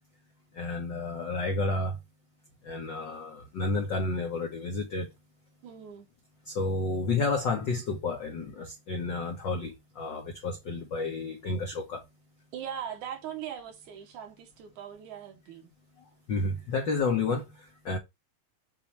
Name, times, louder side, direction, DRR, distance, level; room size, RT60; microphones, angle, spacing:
voice 1, 0.5-2.0 2.6-5.1 6.5-12.0 16.3-18.0, left 3 dB, 75° left, 1.0 m, -31 dB
voice 2, 5.6-6.1 12.5-15.7, right 9 dB, 75° right, 2.5 m, -40 dB
6.8 x 3.1 x 4.5 m
omnidirectional pair, 3.5 m